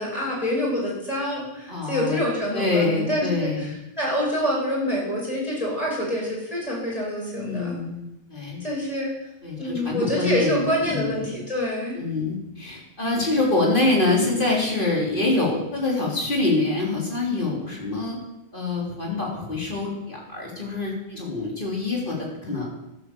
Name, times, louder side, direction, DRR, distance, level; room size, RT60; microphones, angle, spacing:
voice 1, 0.0-7.8 8.6-9.1 9.6-12.0, equal, 35° left, -5 dB, 5.7 m, -26 dB
voice 2, 1.7-2.2 2.5-3.7 7.3-8.6 9.4-11.2 11.9-18.2 18.5-22.6, left 2 dB, 55° left, -3 dB, 3.8 m, -25 dB
12.5 x 8.3 x 7.0 m, 0.90 s
omnidirectional pair, 1.1 m